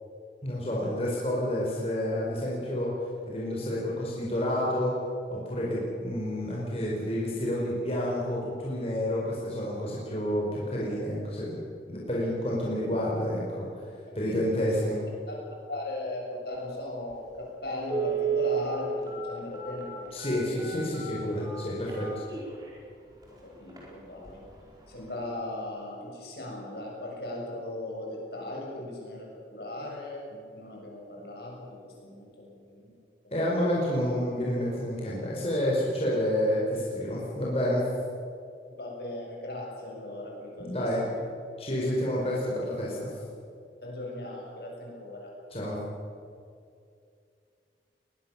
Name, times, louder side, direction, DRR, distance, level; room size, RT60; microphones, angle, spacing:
voice 1, 0.4-2.9 3.3-4.9 5.3-11.6 11.9-13.7 14.1-15.0 20.1-22.1 33.3-37.8 40.6-41.0 41.6-43.1 45.5-45.8, equal, 35° left, -5 dB, 4.8 m, -29 dB
voice 2, 14.1-14.7 15.3-20.6 23.4-24.4 24.9-32.9 38.8-40.7 41.0-41.1 43.8-45.3, left 1 dB, 65° left, -2 dB, 7.2 m, -38 dB
Telephone, 17.1-17.2 17.8-22.7 23.2-23.3 23.7-23.9 24.2-24.5 24.9-25.0, right 6 dB, 20° right, 4.8 m, -32 dB
21.5 x 21.0 x 7.3 m, 2.4 s
head